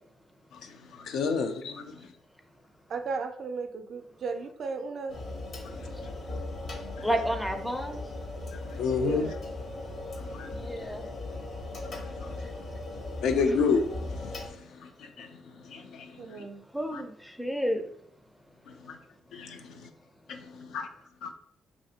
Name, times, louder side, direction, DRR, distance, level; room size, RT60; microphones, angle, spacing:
voice 1, 0.5-2.1 5.7-6.1 7.0-7.1 8.5-9.3 10.2-10.5 12.0-12.4 13.2-15.4 15.6-16.5 16.9-17.0 18.7-19.0 19.3-19.9 20.3-20.9 21.2-21.3, left 5 dB, 75° left, 0.3 m, -31 dB
voice 2, 2.9-5.2 8.9-9.4 16.2-16.6, right 4 dB, 60° right, 0.4 m, -35 dB
sound 1, 5.1-14.5, left 2 dB, 55° left, 0.8 m, -38 dB
voice 3, 7.0-8.0 10.5-11.1 16.7-17.9, equal, 5° left, 0.4 m, -31 dB
2.7 x 2.5 x 2.7 m
cardioid pair, 90°, 0 cm